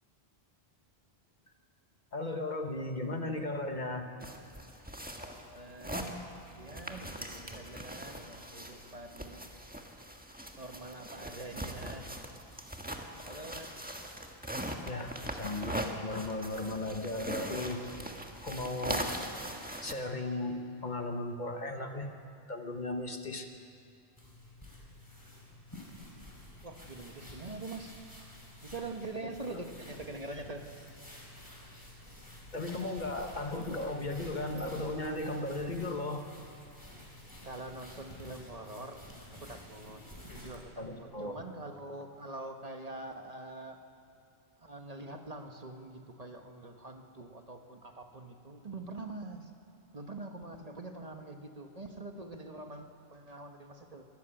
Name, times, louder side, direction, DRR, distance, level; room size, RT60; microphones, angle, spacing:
voice 1, 2.1-4.1 14.8-17.8 18.4-19.0 19.8-22.1 22.5-23.5 32.5-36.3 40.8-41.3, left 2 dB, 50° left, 5 dB, 1.4 m, -36 dB
sound 1, 4.2-19.9, equal, 10° right, 1.4 m, -41 dB
voice 2, 5.1-6.2 6.5-9.5 10.6-12.1 13.2-13.7 26.6-27.9 28.6-30.7 37.4-39.0 39.3-43.8 44.6-49.5 49.9-54.0, right 2 dB, 40° right, 4 dB, 1.3 m, -44 dB
sound 2, 24.2-40.7, left 1 dB, 20° left, 4.1 m, -50 dB
23.0 x 13.5 x 9.0 m, 2.4 s
omnidirectional pair, 1.0 m